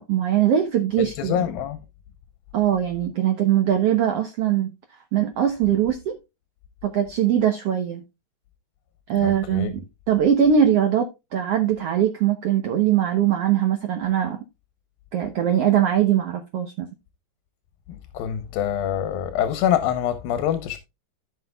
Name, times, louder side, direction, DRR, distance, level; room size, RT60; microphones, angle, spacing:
voice 1, 0.0-1.4 2.5-4.7 5.1-6.2 6.8-8.0 9.1-9.8 10.1-14.4 15.1-16.9, right 9 dB, 80° right, 1.3 m, -21 dB
voice 2, 1.0-1.8 9.2-9.7 18.1-20.8, left 10 dB, 85° left, 2.7 m, -25 dB
15.0 x 5.8 x 2.3 m
omnidirectional pair, 4.0 m